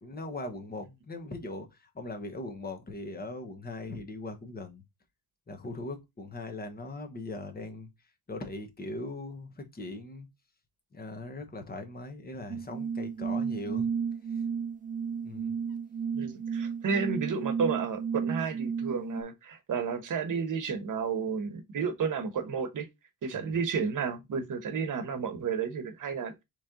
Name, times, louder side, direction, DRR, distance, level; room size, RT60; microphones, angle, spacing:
voice 1, 0.0-4.8 5.5-7.9 8.3-10.3 10.9-13.9 14.3-14.4 15.2-15.5 23.3-23.6, left 2 dB, 25° left, 1.0 m, -40 dB
sound 1, 12.5-19.2, right 6 dB, 25° right, 0.4 m, -33 dB
voice 2, 16.1-22.9 23.2-26.3, right 6 dB, 55° right, 1.1 m, -32 dB
4.2 x 3.2 x 3.6 m
cardioid pair, 120°, 38 cm